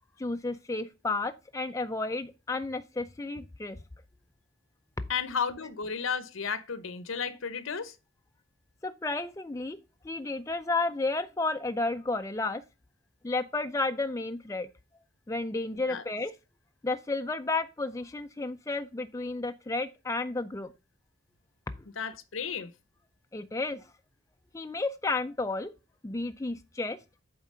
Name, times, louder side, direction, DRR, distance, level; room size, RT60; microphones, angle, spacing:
voice 1, 0.2-3.8 8.8-9.8 10.0-12.6 13.2-14.7 15.3-16.3 16.8-20.7 23.3-23.8 24.5-25.7 26.0-27.0, left 3 dB, 15° left, 0.4 m, -32 dB
voice 2, 5.1-7.9 15.7-16.0 22.0-22.7, left 6 dB, 80° left, 0.9 m, -33 dB
8.7 x 3.6 x 5.4 m
head